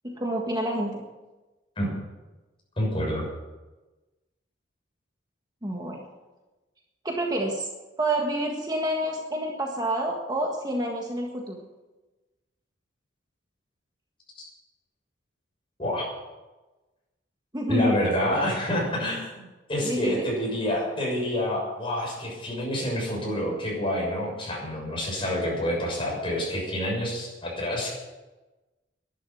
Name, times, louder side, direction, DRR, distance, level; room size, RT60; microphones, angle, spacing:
voice 1, 0.0-1.0 5.6-6.0 7.0-7.7 8.0-11.6 17.5-18.0 19.8-20.3, right 1 dB, 20° right, 0 dB, 1.6 m, -28 dB
voice 2, 2.8-3.3 15.8-16.1 17.7-27.9, equal, 30° left, -3 dB, 6.8 m, -28 dB
11.5 x 11.0 x 9.2 m, 1.2 s
head